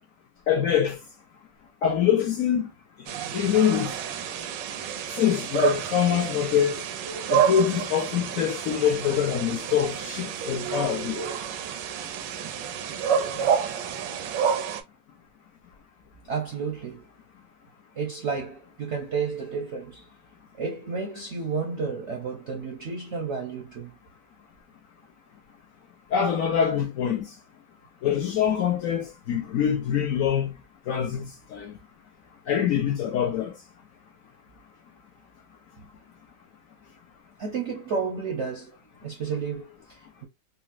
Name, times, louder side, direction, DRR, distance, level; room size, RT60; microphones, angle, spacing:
voice 1, 0.5-1.0 1.8-2.7 3.3-3.9 5.1-6.9 7.3-11.2 26.1-27.2 28.0-30.5 30.9-31.7 32.5-33.5, left 9 dB, 70° left, 0.8 m, -24 dB
sound 1, 3.1-14.8, right 8 dB, 90° right, 1.3 m, -29 dB
voice 2, 16.2-17.0 18.0-20.0 20.6-23.9 37.4-38.8 39.0-40.3, right 5 dB, 65° right, 0.7 m, -31 dB
3.9 x 2.0 x 2.4 m
omnidirectional pair, 1.9 m